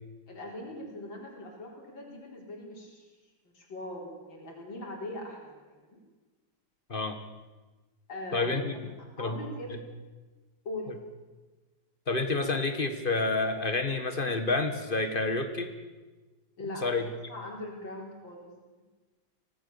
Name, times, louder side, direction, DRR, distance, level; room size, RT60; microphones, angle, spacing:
voice 1, 0.3-3.0 3.5-6.0 8.1-8.6 9.2-9.7 10.6-10.9 16.6-17.0 17.3-18.5, left 1 dB, 85° left, 0 dB, 4.8 m, -41 dB
voice 2, 8.3-8.7 9.2-9.4 12.1-15.7 16.8-17.0, left 3 dB, 30° left, 8 dB, 1.6 m, -29 dB
24.0 x 18.0 x 7.1 m, 1.2 s
omnidirectional pair, 2.0 m